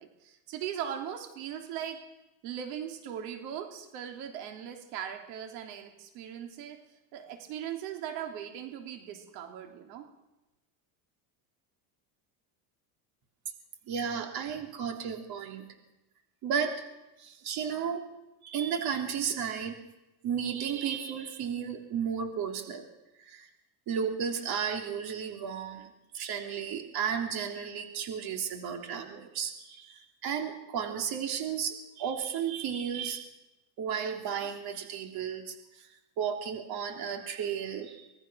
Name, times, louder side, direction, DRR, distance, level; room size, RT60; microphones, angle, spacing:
voice 1, 0.0-2.0 2.4-6.8 7.1-10.1, right 9 dB, 90° right, 4 dB, 3.4 m, -39 dB
voice 2, 13.9-15.6 16.4-16.8 17.2-18.0 18.4-19.7 20.2-22.8 23.2-23.5 23.9-25.9 26.1-33.3 33.8-35.9 36.2-38.1, right 7 dB, 50° right, 4 dB, 3.3 m, -33 dB
25.0 x 19.0 x 6.3 m, 0.97 s
cardioid pair, 150°, 49 cm